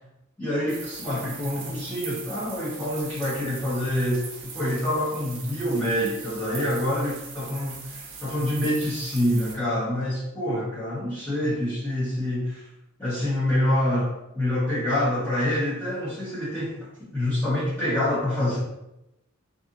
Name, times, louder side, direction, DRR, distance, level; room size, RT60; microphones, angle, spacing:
voice 1, 0.4-4.3 4.5-12.7 13.0-16.7 17.1-18.6, left 1 dB, 10° left, -12 dB, 0.9 m, -26 dB
sound 1, 0.7-9.5, right 5 dB, 60° right, 0.5 m, -40 dB
2.6 x 2.5 x 2.5 m, 0.90 s
head